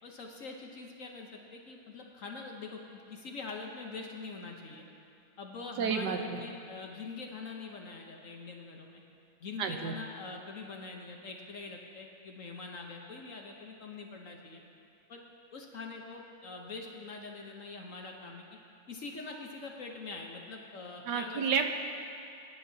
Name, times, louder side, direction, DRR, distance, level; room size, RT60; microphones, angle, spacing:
voice 1, 0.0-4.9 5.4-9.0 9.4-14.6 15.1-15.2 15.5-18.4 18.9-21.4, left 4 dB, 55° left, 1 dB, 1.0 m, -44 dB
voice 2, 5.8-6.4 9.6-9.9 21.1-21.7, right 6 dB, 70° right, 5 dB, 1.2 m, -30 dB
22.0 x 10.5 x 2.7 m, 2.5 s
omnidirectional pair, 2.1 m